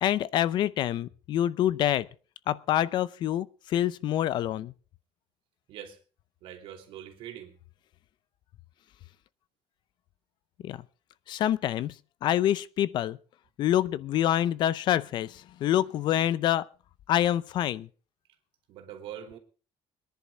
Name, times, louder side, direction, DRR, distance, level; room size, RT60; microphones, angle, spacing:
voice 1, 0.0-2.1 2.5-4.7 10.6-10.8 11.3-11.9 12.2-13.2 13.6-16.6 17.1-17.9, left 12 dB, 55° left, 0.6 m, -26 dB
voice 2, 5.7-6.0 6.4-7.5 18.7-19.4, right 10 dB, 70° right, 2.9 m, -43 dB
23.5 x 10.5 x 3.6 m
cardioid pair, 175°, 9 cm